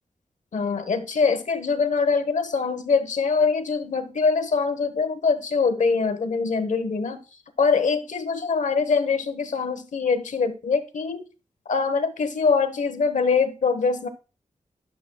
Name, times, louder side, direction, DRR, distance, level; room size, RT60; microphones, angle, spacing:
voice 1, 0.5-7.2 7.6-11.2 11.7-14.1, left 5 dB, 65° left, 10 dB, 1.0 m, -23 dB
11.5 x 7.4 x 2.3 m, 0.34 s
wide cardioid pair, 165°, 13 cm